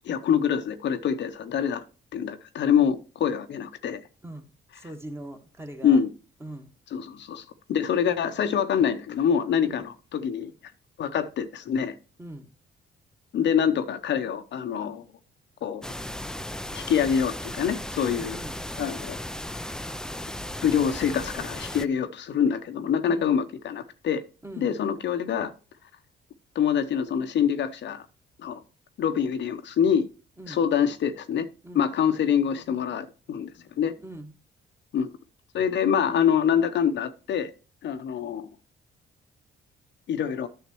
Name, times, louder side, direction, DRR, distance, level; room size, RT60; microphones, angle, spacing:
voice 1, 0.0-1.8 2.1-4.0 5.8-6.1 6.9-10.5 11.0-12.0 13.3-15.0 15.6-15.8 16.7-18.4 18.8-19.2 20.6-24.2 24.6-25.5 26.5-28.1 28.4-28.6 29.0-30.1 30.5-31.5 31.7-33.5 33.8-33.9 34.9-35.1 35.5-37.5 37.8-38.5 40.1-40.5, left 8 dB, 65° left, 0.8 m, -25 dB
voice 2, 4.7-6.0 6.4-6.7 9.6-9.8 12.2-12.4 18.1-18.5 23.1-23.3 24.4-24.7 30.4-30.6 31.6-31.9 34.0-34.3, right 1 dB, 10° right, 1.5 m, -41 dB
sound 1, 15.8-21.9, left 1 dB, 5° left, 0.4 m, -36 dB
10.0 x 6.4 x 3.0 m
cardioid pair, 90°, 20 cm